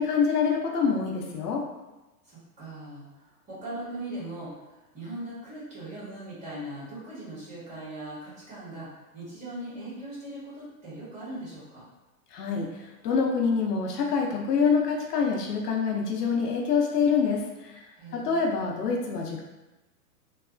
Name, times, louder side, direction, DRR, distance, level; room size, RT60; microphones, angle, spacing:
voice 1, 0.0-1.6 12.3-17.8 18.1-19.4, left 5 dB, 80° left, 0 dB, 0.7 m, -26 dB
voice 2, 2.2-8.9 9.1-11.8 17.9-18.6, right 1 dB, 15° right, -9 dB, 1.3 m, -40 dB
3.1 x 2.0 x 2.5 m, 1.1 s
hypercardioid pair, 120°, 47 cm